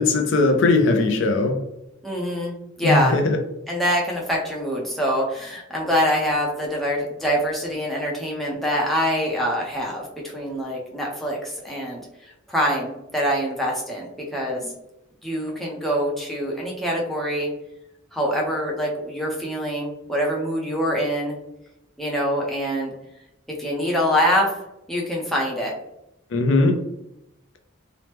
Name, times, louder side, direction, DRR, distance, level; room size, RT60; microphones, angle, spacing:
voice 1, 0.0-1.6 2.8-3.4 14.6-14.7 26.3-26.7, left 3 dB, 60° left, 5 dB, 0.4 m, -19 dB
voice 2, 2.0-3.2 3.7-12.0 12.5-14.6 15.2-17.5 18.1-21.4 22.0-22.9 23.6-24.5 24.9-25.7, equal, ahead, -3 dB, 0.5 m, -24 dB
2.9 x 2.0 x 3.2 m, 0.86 s
head